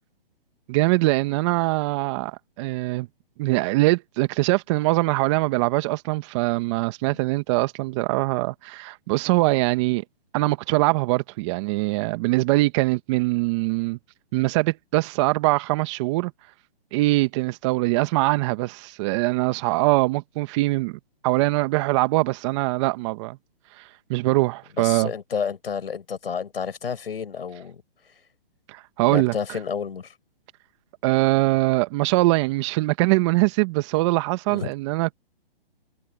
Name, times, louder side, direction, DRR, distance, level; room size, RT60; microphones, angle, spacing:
voice 1, 0.7-3.1 3.4-10.0 10.3-14.0 14.3-16.3 16.9-23.4 23.8-23.9 24.1-25.1 28.7-29.6 31.0-35.1, right 21 dB, 30° right, 1.7 m, -22 dB
voice 2, 24.8-27.8 29.1-30.1 34.5-34.7, left 6 dB, 75° left, 7.0 m, -30 dB
hypercardioid pair, 150°, 30 cm